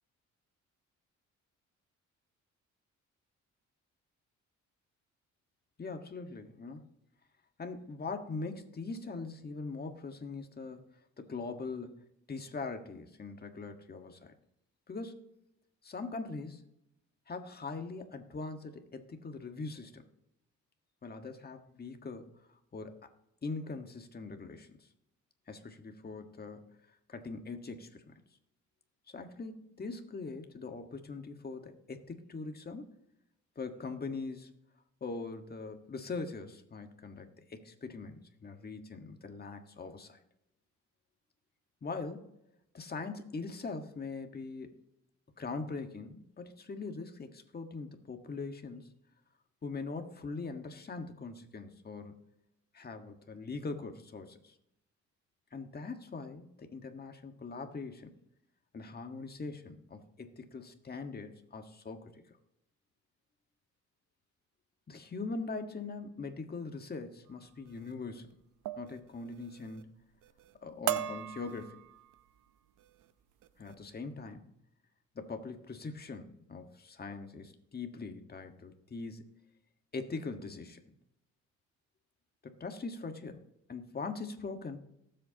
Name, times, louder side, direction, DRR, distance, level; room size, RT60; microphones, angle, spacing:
voice 1, 5.8-6.9 7.6-10.9 11.2-14.3 14.9-15.2 15.8-16.6 17.3-20.0 21.0-22.3 22.7-23.1 23.4-24.8 25.5-26.8 27.1-28.1 29.1-32.9 33.5-34.5 35.0-40.2 41.8-42.3 42.7-44.7 45.4-48.9 49.6-52.2 52.7-54.5 55.5-58.1 58.7-62.4 64.9-68.3 68.8-69.9 70.6-71.8 73.6-74.5 75.1-79.2 79.9-80.8 82.4-83.4 83.7-84.8, left 4 dB, 30° left, 5 dB, 1.6 m, -42 dB
sound 1, 67.7-67.9 68.7-69.0 69.3-69.8 70.2-70.5 70.9-72.2 72.8-73.0 73.4-73.7, right 11 dB, 80° right, 0.8 m, -38 dB
18.5 x 7.9 x 2.9 m, 0.81 s
cardioid pair, 90°, 30 cm